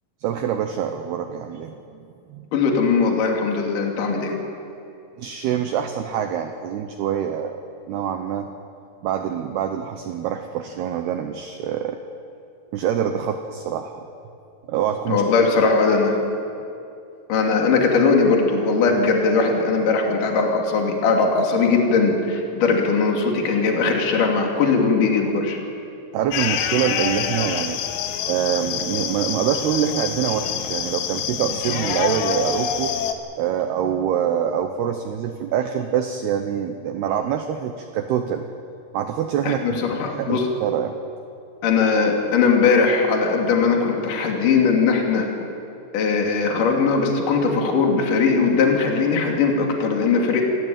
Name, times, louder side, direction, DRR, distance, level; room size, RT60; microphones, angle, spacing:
voice 1, 0.2-2.5 5.2-7.6 7.9-8.5 9.0-12.0 12.7-14.1 14.7-15.2 15.9-16.0 26.1-27.8 28.3-33.0 33.4-38.5 38.9-39.6 40.1-41.0, right 9 dB, 90° right, 6 dB, 2.3 m, -25 dB
voice 2, 2.5-4.3 15.1-16.1 17.3-25.6 39.5-40.4 41.6-45.3 45.9-50.4, left 4 dB, 45° left, 1 dB, 3.6 m, -19 dB
sound 1, 26.3-33.1, left 8 dB, 85° left, 3.8 m, -26 dB
26.0 x 15.0 x 9.0 m, 2.6 s
omnidirectional pair, 6.0 m